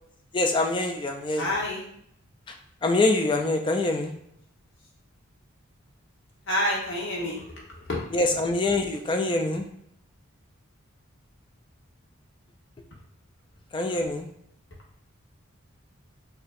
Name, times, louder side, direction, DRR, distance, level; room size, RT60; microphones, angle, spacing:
voice 1, 0.3-1.6 2.5-2.6 2.8-4.1 8.1-9.7 13.7-14.3, left 2 dB, 25° left, 4 dB, 0.3 m, -25 dB
voice 2, 1.4-1.8 6.5-7.5 7.9-8.0, left 1 dB, 60° left, -3 dB, 1.1 m, -27 dB
4.8 x 2.6 x 2.5 m, 0.70 s
head